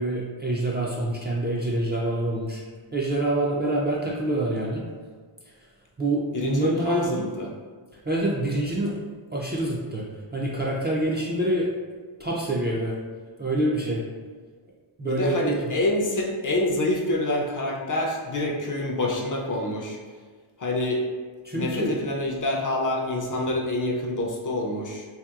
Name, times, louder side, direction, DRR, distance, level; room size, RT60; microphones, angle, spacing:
voice 1, 0.0-2.6 2.9-4.8 6.0-7.3 7.9-8.9 9.3-10.1 10.3-11.7 12.2-13.0 13.4-14.1 15.0-15.7 21.4-22.0, right 1 dB, 25° right, -5 dB, 0.3 m, -26 dB
voice 2, 6.3-7.5 15.0-20.0 20.6-21.0 21.5-25.1, left 1 dB, 40° left, -1 dB, 0.4 m, -27 dB
2.8 x 2.8 x 2.3 m, 1.5 s
wide cardioid pair, 80°, 49 cm